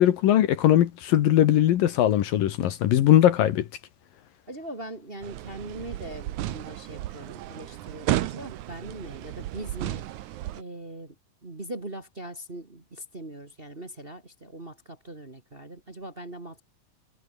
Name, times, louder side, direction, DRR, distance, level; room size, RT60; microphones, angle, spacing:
voice 1, 0.0-3.7, left 12 dB, 70° left, 2.9 m, -20 dB
voice 2, 4.5-11.1 11.4-16.6, right 1 dB, 25° right, 1.3 m, -41 dB
sound 1, 5.2-10.6, right 14 dB, 70° right, 2.0 m, -33 dB
omnidirectional pair, 4.5 m